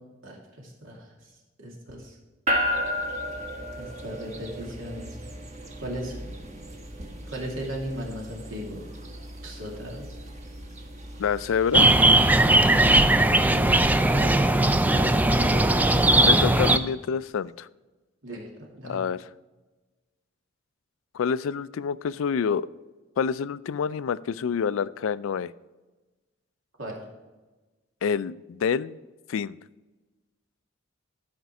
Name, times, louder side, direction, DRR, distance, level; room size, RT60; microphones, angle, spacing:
voice 1, 0.2-1.3 1.6-2.2 3.8-5.2 5.8-6.2 7.3-8.8 9.4-10.1 13.5-13.7 14.1-14.6 15.0-16.0 18.2-19.0 26.8-27.0, equal, 80° right, -1 dB, 2.5 m, -37 dB
sound 1, 2.5-16.7, equal, 35° right, 1.2 m, -36 dB
voice 2, 11.2-12.1 16.2-17.7 18.8-19.2 21.1-22.7 23.2-25.5 28.0-29.0 29.3-29.6, left 6 dB, 80° left, 17 dB, 0.3 m, -27 dB
sound 2, 11.7-16.8, right 1 dB, 10° right, 0.3 m, -19 dB
12.5 x 5.2 x 4.7 m, 1.2 s
head